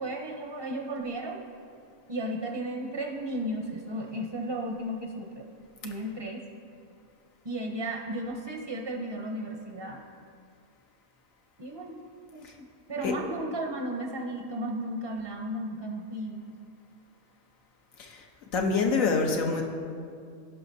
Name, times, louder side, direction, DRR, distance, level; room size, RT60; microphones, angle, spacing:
voice 1, 0.0-1.4 2.1-5.4 5.8-6.4 7.4-10.0 11.6-12.0 12.3-12.5 12.9-16.6, right 1 dB, 30° right, 1 dB, 0.5 m, -34 dB
voice 2, 18.5-19.6, left 4 dB, 85° left, 2 dB, 1.3 m, -26 dB
17.0 x 5.8 x 2.7 m, 2.3 s
omnidirectional pair, 1.4 m